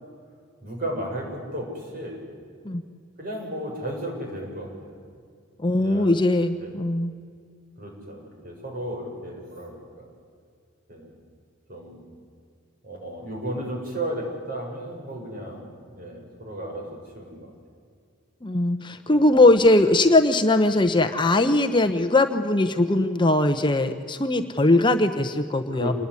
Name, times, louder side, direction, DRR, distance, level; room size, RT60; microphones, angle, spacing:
voice 1, 0.6-2.2 3.2-5.0 5.8-6.1 6.6-6.7 7.8-10.1 10.9-11.1 11.7-12.0 12.8-17.5 19.1-19.3 25.7-25.9, right 1 dB, 45° right, 1 dB, 7.2 m, -34 dB
voice 2, 5.6-7.1 18.4-25.9, left 2 dB, 25° left, 7 dB, 1.0 m, -20 dB
27.0 x 20.5 x 9.8 m, 2.2 s
head